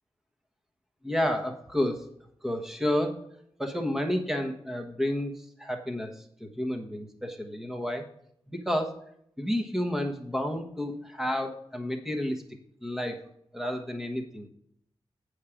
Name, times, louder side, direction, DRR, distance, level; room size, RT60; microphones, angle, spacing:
voice 1, 1.0-2.0 2.4-3.2 3.6-5.3 5.6-8.0 8.5-9.0 9.4-12.4 12.8-13.2 13.5-14.5, left 1 dB, 5° right, 4 dB, 1.2 m, -30 dB
8.5 x 5.0 x 5.9 m, 0.70 s
wide cardioid pair, 120°, 10 cm